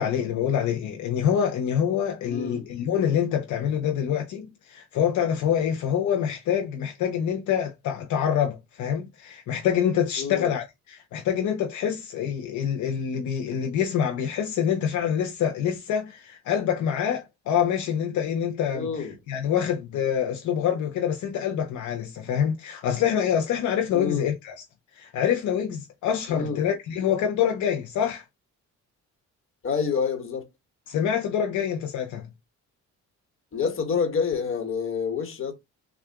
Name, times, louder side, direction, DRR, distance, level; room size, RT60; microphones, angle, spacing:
voice 1, 0.0-24.5 24.9-28.2 30.9-32.3, left 8 dB, 75° left, 0.7 m, -26 dB
voice 2, 2.2-2.7 10.2-10.5 18.7-19.1 23.9-24.3 26.3-26.6 29.6-30.5 33.5-35.5, left 6 dB, 45° left, 1.3 m, -28 dB
3.6 x 2.4 x 3.5 m
cardioid pair, 90°, 30 cm